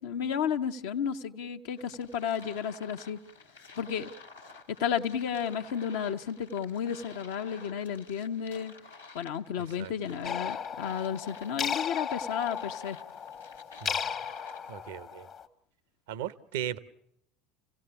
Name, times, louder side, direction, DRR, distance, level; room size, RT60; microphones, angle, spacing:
voice 1, 0.0-3.2 3.8-4.1 4.7-8.7 9.1-13.0, left 8 dB, 65° left, 5 dB, 0.9 m, -32 dB
sound 1, 1.8-14.7, left 4 dB, 85° left, 1.4 m, -52 dB
sound 2, 10.2-15.5, left 7 dB, 40° left, 1.1 m, -35 dB
voice 2, 14.7-15.3 16.1-16.8, right 11 dB, 65° right, 16 dB, 0.8 m, -36 dB
28.0 x 17.0 x 7.0 m, 0.79 s
figure-of-eight pair, 70°, 0 cm